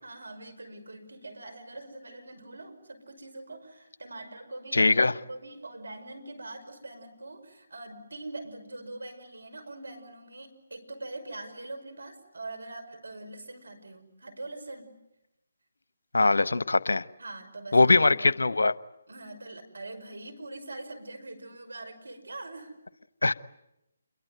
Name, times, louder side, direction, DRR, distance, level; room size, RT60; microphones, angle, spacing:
voice 1, 0.0-5.0 5.3-15.0 17.2-18.4 19.1-22.8, right 2 dB, 75° right, 8 dB, 5.6 m, -43 dB
voice 2, 4.7-5.1 16.1-17.0 17.7-18.7 23.2-23.3, left 3 dB, 75° left, 18 dB, 0.9 m, -21 dB
28.5 x 22.5 x 9.3 m, 0.88 s
figure-of-eight pair, 150°, 0 cm